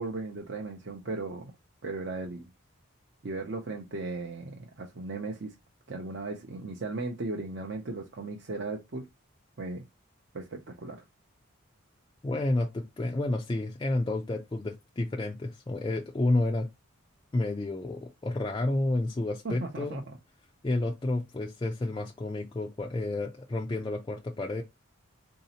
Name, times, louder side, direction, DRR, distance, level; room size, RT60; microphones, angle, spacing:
voice 1, 0.0-1.5 1.8-2.5 3.2-5.5 5.9-9.1 9.6-9.8 10.3-11.0 19.4-20.2, right 3 dB, 55° right, 0.6 m, -36 dB
voice 2, 12.2-16.7 17.3-20.0 20.6-24.6, left 2 dB, 20° left, 0.3 m, -30 dB
4.0 x 2.7 x 2.7 m
head